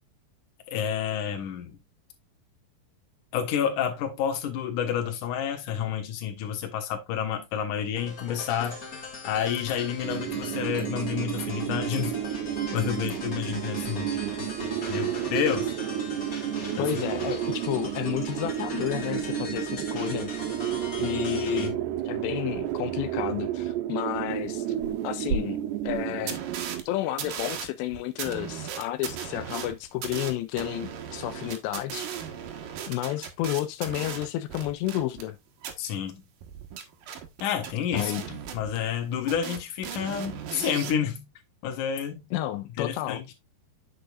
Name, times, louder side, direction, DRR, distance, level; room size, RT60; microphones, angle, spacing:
voice 1, 0.7-1.8 3.3-8.8 9.2-12.2 12.7-14.3 14.9-15.7 16.8-16.9 21.5-21.7 35.8-36.2 37.4-38.1 38.5-41.2 41.6-42.2 42.8-43.2, left 8 dB, 60° left, 2.6 m, -29 dB
sound 1, 8.0-21.7, left 3 dB, 30° left, 1.8 m, -40 dB
sound 2, 10.0-26.8, right 12 dB, 80° right, 2.9 m, -31 dB
voice 2, 16.8-20.3 21.0-24.7 25.0-26.4 26.9-32.1 32.9-35.4 37.9-38.4 42.3-43.2, left 14 dB, 85° left, 2.8 m, -31 dB
sound 3, 24.8-24.9 25.3-25.4 25.9-26.0 26.3-26.8 27.2-35.3 35.6-35.7 36.4-39.0 39.3-41.0, right 7 dB, 65° right, 2.5 m, -36 dB
8.8 x 6.7 x 2.4 m
omnidirectional pair, 4.9 m